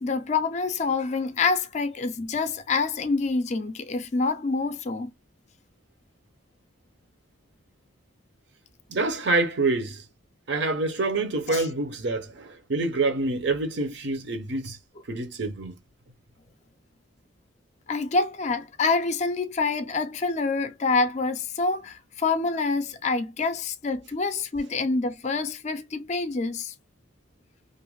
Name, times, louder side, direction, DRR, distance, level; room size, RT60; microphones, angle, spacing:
voice 1, 0.0-5.1 11.5-11.6 17.9-26.7, left 4 dB, 35° left, 0.4 m, -26 dB
voice 2, 8.9-10.0 10.5-14.8 15.1-15.7, right 3 dB, 60° right, 0.6 m, -26 dB
2.5 x 2.1 x 2.9 m
head